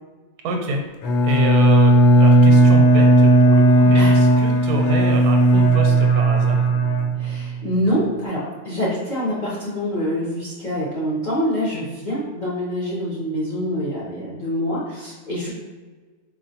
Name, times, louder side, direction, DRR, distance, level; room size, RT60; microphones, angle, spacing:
voice 1, 0.4-0.8 1.2-6.7, right 2 dB, 85° right, 2 dB, 1.1 m, -27 dB
Bowed string instrument, 1.0-7.6, right 2 dB, 65° left, 0.9 m, -15 dB
voice 2, 7.2-15.5, equal, 40° left, -8 dB, 0.7 m, -25 dB
4.6 x 2.5 x 2.7 m, 1.4 s
omnidirectional pair, 1.6 m